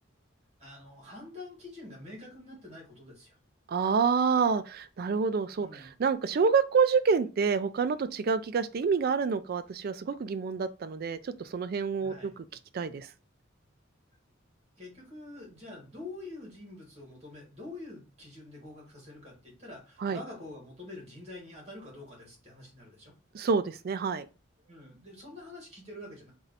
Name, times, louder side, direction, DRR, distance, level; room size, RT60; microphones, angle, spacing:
voice 1, 0.6-3.3 5.5-5.9 12.0-12.3 14.8-23.1 24.6-26.3, left 2 dB, 35° right, 1.8 m, -46 dB
voice 2, 3.7-12.4 12.7-13.1 20.0-20.2 23.3-24.3, right 5 dB, 50° right, 0.4 m, -28 dB
3.1 x 2.7 x 4.0 m
head